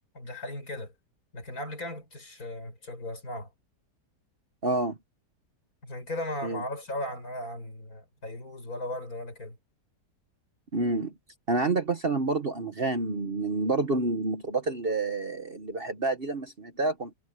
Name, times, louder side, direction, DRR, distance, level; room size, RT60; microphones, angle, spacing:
voice 1, 0.1-0.9 1.3-3.5 5.8-9.6, left 1 dB, 60° left, 6.3 m, -37 dB
voice 2, 4.6-5.0 6.4-6.6 10.7-11.1 11.5-17.1, right 3 dB, 35° right, 1.3 m, -28 dB
omnidirectional pair, 1.8 m